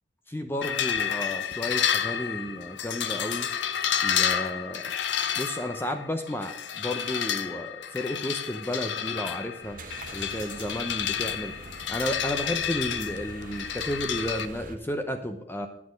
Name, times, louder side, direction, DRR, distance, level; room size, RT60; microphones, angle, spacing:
voice 1, 0.3-3.5 4.0-4.9 5.4-9.8 10.1-11.5 11.9-15.7, left 1 dB, 10° left, 6 dB, 0.7 m, -32 dB
sound 1, 0.6-14.4, left 8 dB, 75° left, 0.7 m, -30 dB
sound 2, 9.6-14.8, right 3 dB, 50° right, 1.1 m, -44 dB
9.6 x 8.5 x 5.1 m, 0.83 s
head